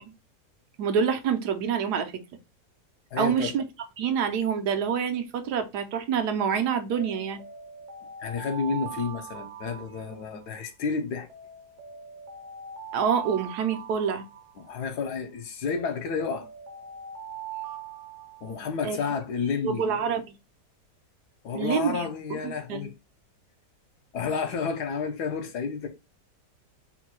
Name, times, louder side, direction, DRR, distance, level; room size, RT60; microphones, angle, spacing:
voice 1, 0.8-2.1 3.1-3.6 4.0-7.4 12.9-14.2 18.8-19.0 19.6-20.2 21.5-22.9, right 7 dB, 80° right, 1.2 m, -27 dB
voice 2, 3.1-3.6 8.2-11.3 14.6-16.5 18.4-19.8 21.4-22.9 24.1-25.9, left 5 dB, 75° left, 1.4 m, -30 dB
Alarm, 6.9-10.6 11.3-15.0 15.7-18.9, right 7 dB, 55° right, 0.8 m, -42 dB
4.4 x 2.2 x 4.2 m
omnidirectional pair, 1.8 m